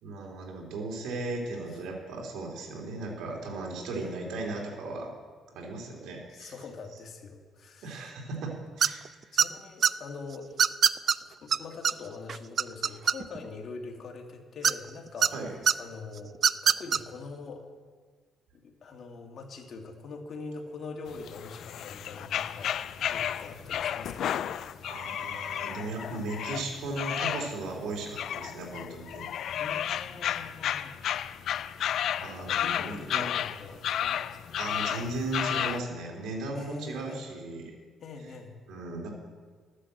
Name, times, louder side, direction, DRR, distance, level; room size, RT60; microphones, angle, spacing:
voice 1, 0.0-5.1 5.5-6.5 7.8-9.0 15.3-15.5 24.8-29.3 32.2-33.3 34.6-37.7 38.7-39.1, right 2 dB, 85° right, 0 dB, 2.7 m, -36 dB
voice 2, 6.3-8.1 8.9-9.1 9.3-10.6 11.2-15.3 15.8-16.4 16.6-17.7 18.6-24.2 29.6-31.0 32.3-34.4 36.5-37.2 38.0-38.5, left 4 dB, 50° left, 2 dB, 2.2 m, -43 dB
sound 1, 8.8-9.1 9.4-9.9 10.6-11.2 11.5-11.6 11.8-11.9 12.3-13.5 14.6-15.3 15.7-15.8 16.3-17.0, right 7 dB, 45° right, 0.3 m, -22 dB
sound 2, 21.1-35.8, left 10 dB, 65° left, 0.4 m, -33 dB
12.5 x 9.8 x 7.8 m, 1.5 s
cardioid pair, 115°, 0 cm